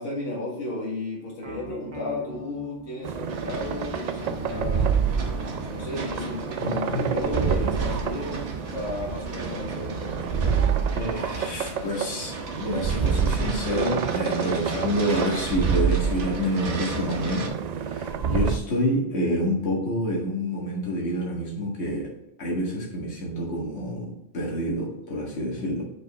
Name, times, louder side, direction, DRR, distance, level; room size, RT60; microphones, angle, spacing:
voice 1, 0.0-4.9 5.6-10.8, left 2 dB, 85° left, -3 dB, 2.1 m, -34 dB
sound 1, 1.4-8.9, right 2 dB, 25° right, 0.9 m, -40 dB
sound 2, 3.0-18.6, right 7 dB, 90° right, 0.3 m, -28 dB
sound 3, 3.3-17.5, right 2 dB, 70° right, 1.4 m, -36 dB
voice 2, 6.6-7.0 10.9-17.5 17.9-22.1 22.4-25.8, equal, 65° left, -3 dB, 1.9 m, -28 dB
6.0 x 5.2 x 3.5 m, 0.88 s
omnidirectional pair, 1.3 m